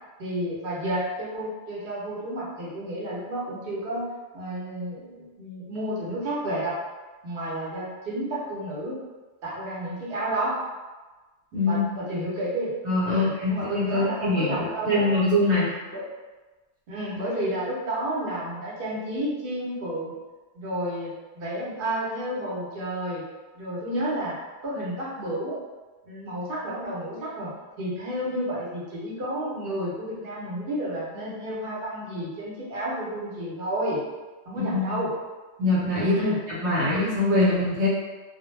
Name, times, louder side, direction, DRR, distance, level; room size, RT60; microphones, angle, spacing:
voice 1, 0.2-4.0 4.3-6.7 7.2-9.0 9.4-10.5 11.6-12.7 13.0-15.1 15.4-15.6 15.9-16.0 16.9-20.1 20.5-23.2 23.5-24.3 24.6-25.6 26.0-27.5 27.8-34.0 34.5-35.1 35.9-36.4, right 1 dB, 55° right, -6 dB, 0.9 m, -31 dB
voice 2, 11.5-11.8 12.8-15.7 34.5-35.0 35.6-37.9, left 2 dB, 85° right, -11 dB, 1.1 m, -23 dB
2.2 x 2.1 x 3.1 m, 1.2 s
omnidirectional pair, 1.1 m